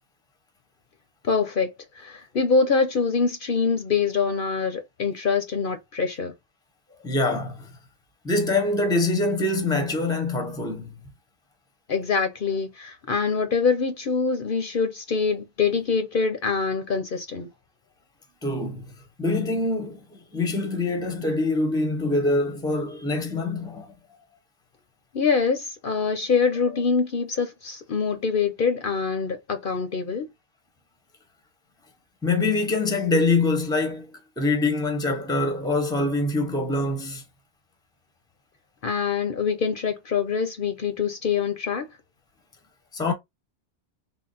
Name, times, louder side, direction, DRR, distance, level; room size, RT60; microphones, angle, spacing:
voice 1, 1.2-1.7 2.0-6.3 11.9-17.5 25.1-30.3 38.8-41.9, left 5 dB, 55° left, 0.8 m, -24 dB
voice 2, 7.0-7.7 8.2-11.0 18.4-18.9 19.2-23.9 32.2-34.1 34.4-37.2 42.9-43.1, left 2 dB, 5° left, 0.7 m, -24 dB
3.7 x 2.1 x 3.9 m
omnidirectional pair, 1.2 m